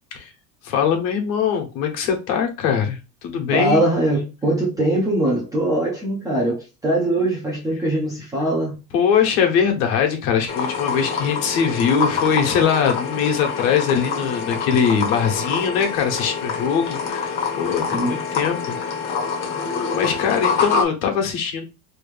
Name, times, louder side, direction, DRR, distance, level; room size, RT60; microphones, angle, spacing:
voice 1, 0.6-3.8 8.9-18.8 19.9-21.6, left 7 dB, 75° left, 1.3 m, -21 dB
voice 2, 3.5-8.8 17.9-18.2, right 1 dB, 10° right, 0.3 m, -21 dB
sound 1, 10.5-20.8, left 5 dB, 30° left, 0.7 m, -26 dB
3.1 x 2.6 x 3.3 m
cardioid pair, 170°, 42 cm